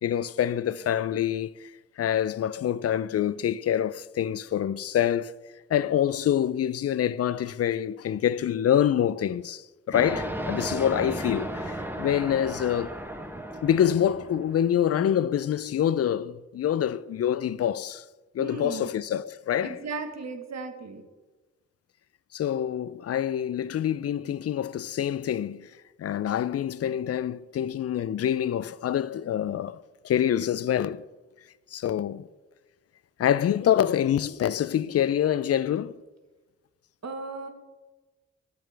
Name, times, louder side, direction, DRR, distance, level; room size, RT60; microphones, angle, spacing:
voice 1, 0.0-1.7 2.0-5.3 5.7-13.0 13.6-18.0 18.3-19.8 22.3-25.7 26.0-31.0 31.7-32.3 33.2-35.9, left 10 dB, 55° left, 0.4 m, -26 dB
sound 1, 9.9-14.7, right 1 dB, 5° right, 1.0 m, -34 dB
voice 2, 18.4-18.9 19.6-21.0 37.0-37.5, right 4 dB, 65° right, 1.2 m, -36 dB
9.5 x 7.6 x 3.4 m
cardioid pair, 45°, 29 cm